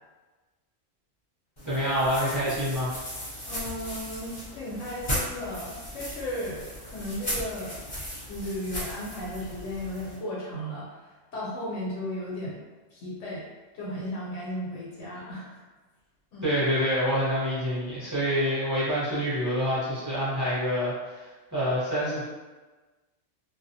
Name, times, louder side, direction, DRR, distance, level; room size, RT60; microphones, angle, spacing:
sound 1, 1.6-10.2, equal, 30° left, 0.7 m, -37 dB
voice 1, 1.6-3.0 16.4-22.2, equal, 20° right, -10 dB, 0.7 m, -27 dB
voice 2, 3.5-7.8 8.3-11.1 11.3-12.6 12.9-13.4 13.7-15.6 16.3-16.6, left 1 dB, 80° left, -6 dB, 1.1 m, -35 dB
2.4 x 2.1 x 2.7 m, 1.3 s
omnidirectional pair, 1.3 m